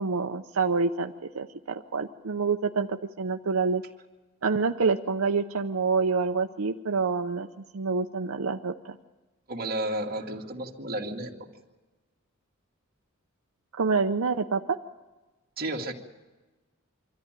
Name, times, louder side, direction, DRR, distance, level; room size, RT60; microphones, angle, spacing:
voice 1, 0.0-3.8 4.4-7.5 7.7-9.0 13.8-14.8, right 4 dB, 80° right, 5 dB, 0.7 m, -27 dB
voice 2, 9.5-11.3 15.6-15.9, right 1 dB, 45° right, 0 dB, 2.2 m, -32 dB
24.5 x 13.5 x 9.0 m, 1.2 s
head